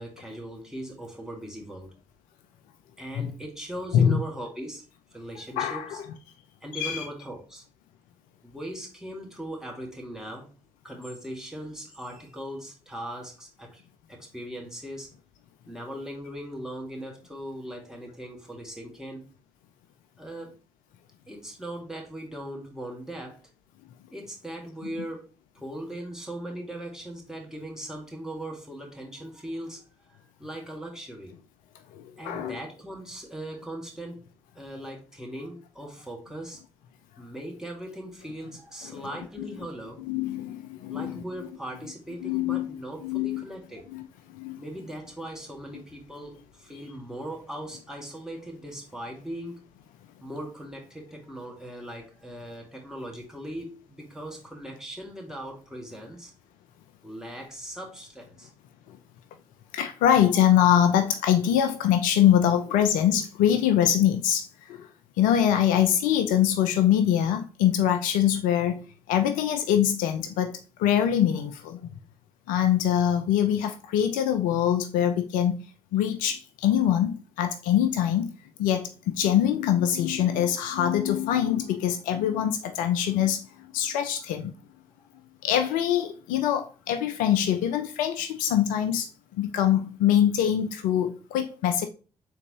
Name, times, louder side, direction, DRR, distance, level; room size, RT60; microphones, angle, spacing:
voice 1, 0.0-1.9 3.0-4.8 5.1-6.0 6.6-7.6 8.4-10.5 10.8-13.8 14.1-15.1 15.7-19.3 20.2-20.6 21.3-23.4 24.1-25.3 25.5-29.8 30.1-31.3 32.2-34.2 34.5-36.6 37.2-40.0 40.9-43.9 44.6-49.6 50.2-56.3 57.0-58.5, right 1 dB, 5° right, 1.5 m, -39 dB
voice 2, 5.6-6.1 6.7-7.1 31.9-32.6 38.9-39.0 40.0-41.2 42.2-42.7 43.0-43.4 43.9-44.0 44.3-44.6 58.9-59.0 59.7-64.9 65.2-68.8 69.1-71.8 72.5-75.6 75.9-78.3 78.6-83.4 83.7-84.5 85.4-89.1 89.4-91.8, left 10 dB, 65° left, 0.4 m, -24 dB
3.7 x 3.4 x 3.1 m
figure-of-eight pair, 40°, 15 cm